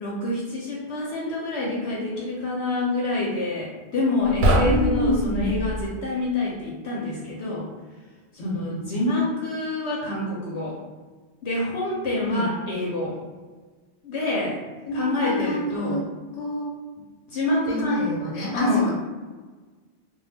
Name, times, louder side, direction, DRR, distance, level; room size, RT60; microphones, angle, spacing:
voice 1, 0.0-7.7 8.4-10.8 11.4-13.2 14.0-14.6 14.9-16.0 17.3-18.2 18.5-18.9, left 2 dB, 70° left, -4 dB, 0.8 m, -27 dB
sound 1, 4.2-5.9, equal, 65° right, 0.8 m, -23 dB
voice 2, 4.6-5.5 8.4-9.0 12.2-12.5 14.9-16.0 16.4-16.7 17.4-18.9, equal, 85° left, -5 dB, 1.0 m, -28 dB
2.2 x 2.2 x 3.2 m, 1.3 s
omnidirectional pair, 1.3 m